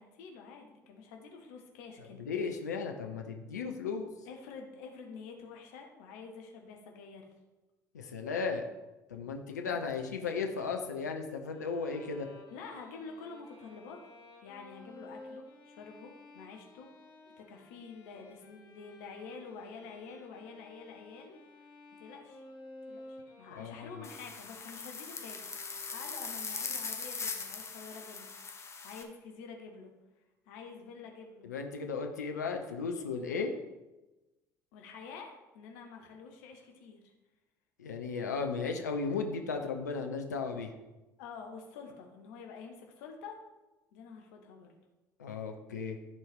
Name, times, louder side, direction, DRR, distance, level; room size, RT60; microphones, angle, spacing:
voice 1, 0.0-2.2 4.2-7.3 9.6-9.9 12.5-14.0 14.4-16.9 17.4-21.4 22.0-22.4 22.9-29.9 30.5-31.5 34.7-37.1 41.2-43.4 43.9-44.7, left 5 dB, 75° left, 2 dB, 1.3 m, -48 dB
voice 2, 2.2-4.1 7.9-8.6 9.1-12.3 23.5-24.0 31.4-33.5 37.8-40.7 45.2-46.0, left 5 dB, 90° left, 4 dB, 0.7 m, -35 dB
Bowed string instrument, 11.5-26.7, left 2 dB, 55° left, 1.9 m, -54 dB
sound 1, 24.0-29.0, left 5 dB, 30° left, 1.3 m, -40 dB
13.5 x 4.6 x 3.6 m, 1.1 s
hypercardioid pair, 60°, 9 cm